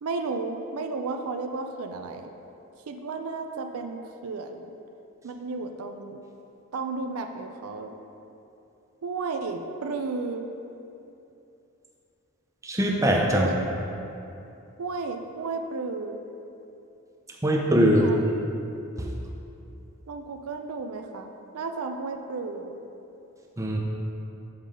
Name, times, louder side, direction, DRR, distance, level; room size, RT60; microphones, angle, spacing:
voice 1, 0.0-2.3 2.9-4.7 5.2-6.2 6.7-7.9 9.0-10.5 13.3-13.6 14.8-16.2 17.9-18.2 20.1-22.8, right 3 dB, 85° right, 5 dB, 0.5 m, -33 dB
voice 2, 12.6-13.5 17.4-18.1 23.6-23.8, equal, 15° right, -1 dB, 0.6 m, -21 dB
7.2 x 3.8 x 4.9 m, 2.8 s
head